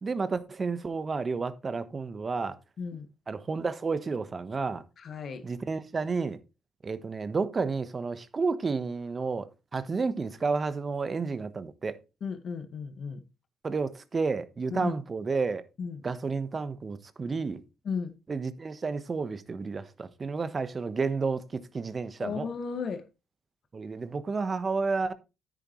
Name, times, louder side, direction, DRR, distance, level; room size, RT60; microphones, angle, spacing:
voice 1, 0.0-2.6 3.3-4.8 5.4-6.4 6.8-9.5 9.7-12.0 13.6-15.6 16.0-17.6 18.3-22.5 23.7-25.1, right 4 dB, 35° right, 1.2 m, -31 dB
voice 2, 5.0-5.4 12.2-13.2 14.7-14.9 15.8-16.0 17.8-18.1 22.2-23.0, left 5 dB, 55° left, 1.7 m, -34 dB
10.0 x 9.3 x 3.2 m
supercardioid pair, 70°, 0 cm